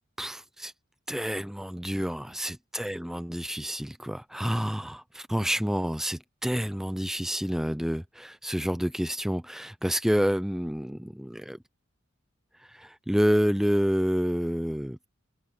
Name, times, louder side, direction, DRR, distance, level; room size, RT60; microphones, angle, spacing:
voice 1, 0.2-0.7 1.1-11.6 12.7-15.1, equal, ahead, 0.7 m, -28 dB
open air
head